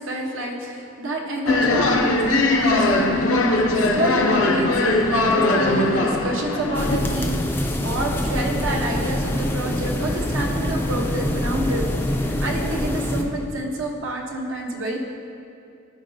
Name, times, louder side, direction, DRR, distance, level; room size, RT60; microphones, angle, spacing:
voice 1, 0.0-11.9 12.4-15.0, right 1 dB, 70° right, 0 dB, 0.9 m, -28 dB
sound 1, 1.5-7.0, left 2 dB, 75° left, 0.6 m, -20 dB
sound 2, 6.7-13.2, left 1 dB, 10° left, 0.4 m, -25 dB
13.5 x 4.9 x 2.7 m, 2.5 s
head